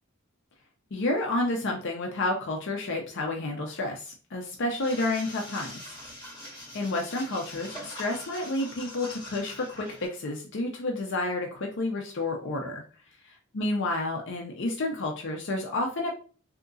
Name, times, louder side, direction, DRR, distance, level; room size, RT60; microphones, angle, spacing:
voice 1, 0.9-5.8 6.7-12.8 13.5-16.1, left 2 dB, 60° left, 1 dB, 0.6 m, -30 dB
sound 1, 4.8-10.1, left 1 dB, 25° left, 1.8 m, -43 dB
3.6 x 2.8 x 2.6 m, 0.38 s
head